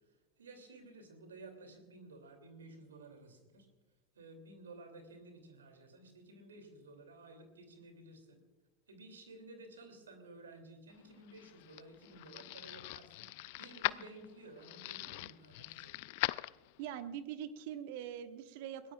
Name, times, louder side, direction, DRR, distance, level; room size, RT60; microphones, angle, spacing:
voice 1, 0.4-3.7 4.1-8.4 8.9-15.9, right 2 dB, 85° right, 6 dB, 2.9 m, -54 dB
sound 1, 11.0-17.0, left 21 dB, 65° left, 0.4 m, -41 dB
voice 2, 16.8-18.9, right 9 dB, 65° right, 9 dB, 1.1 m, -43 dB
22.0 x 17.5 x 2.4 m, 1.2 s
hypercardioid pair, 90°, 0 cm